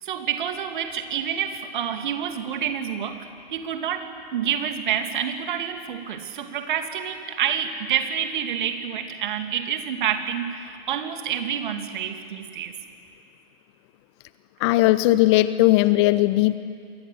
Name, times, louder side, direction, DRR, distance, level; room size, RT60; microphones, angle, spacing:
voice 1, 0.0-12.7, right 8 dB, 50° right, 6 dB, 2.5 m, -28 dB
voice 2, 14.6-16.6, left 17 dB, 25° left, 15 dB, 0.6 m, -18 dB
28.0 x 23.0 x 8.1 m, 2.4 s
figure-of-eight pair, 110°, 31 cm